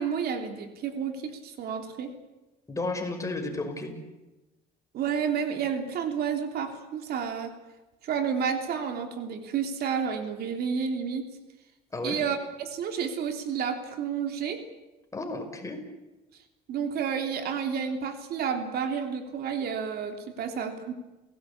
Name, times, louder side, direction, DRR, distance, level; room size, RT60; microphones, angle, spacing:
voice 1, 0.0-2.1 4.9-7.5 8.0-11.3 12.0-14.6 16.7-20.9, right 7 dB, 65° right, 6 dB, 3.3 m, -30 dB
voice 2, 2.7-3.9 11.9-12.2 15.1-15.8, left 2 dB, 20° left, 4 dB, 5.6 m, -33 dB
29.5 x 17.5 x 8.7 m, 1.1 s
cardioid pair, 110°, 17 cm